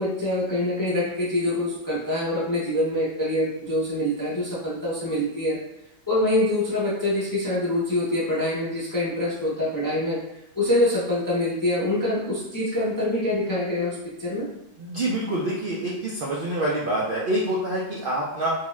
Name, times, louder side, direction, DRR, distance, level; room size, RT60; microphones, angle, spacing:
voice 1, 0.0-5.6 6.1-10.2 10.6-14.5, left 1 dB, 25° left, -8 dB, 0.4 m, -25 dB
voice 2, 14.8-18.5, right 1 dB, 65° right, -5 dB, 0.5 m, -26 dB
2.7 x 2.3 x 3.0 m, 0.91 s
omnidirectional pair, 1.4 m